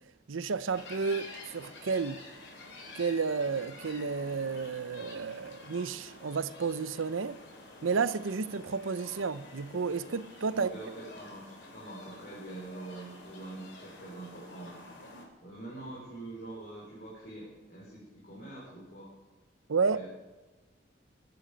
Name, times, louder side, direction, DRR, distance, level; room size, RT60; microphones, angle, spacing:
voice 1, 0.3-2.2 2.9-7.4 7.8-10.7 19.7-20.0, right 5 dB, 90° right, 0.6 m, -31 dB
sound 1, 0.7-15.2, left 2 dB, 70° left, 3.0 m, -49 dB
voice 2, 10.4-14.8 15.4-19.1 19.9-20.1, right 2 dB, 50° left, 4.6 m, -45 dB
22.0 x 10.5 x 5.2 m
head